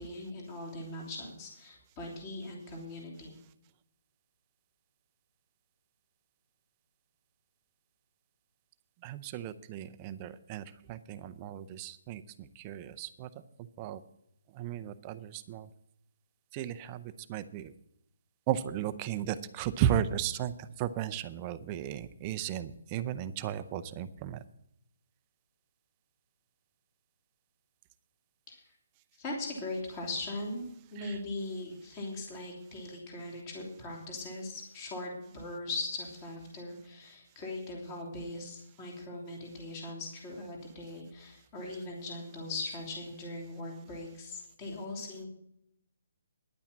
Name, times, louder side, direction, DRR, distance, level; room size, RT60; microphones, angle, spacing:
voice 1, 0.0-3.4 28.5-28.6 29.2-30.6 30.9-45.3, left 2 dB, 20° left, -1 dB, 3.1 m, -40 dB
voice 2, 9.0-13.3 13.8-14.0 14.5-15.7 16.5-17.7 18.5-24.4 31.0-31.1, right 10 dB, 20° right, 12 dB, 0.5 m, -35 dB
10.5 x 8.7 x 7.3 m, 0.78 s
hypercardioid pair, 170°, 0 cm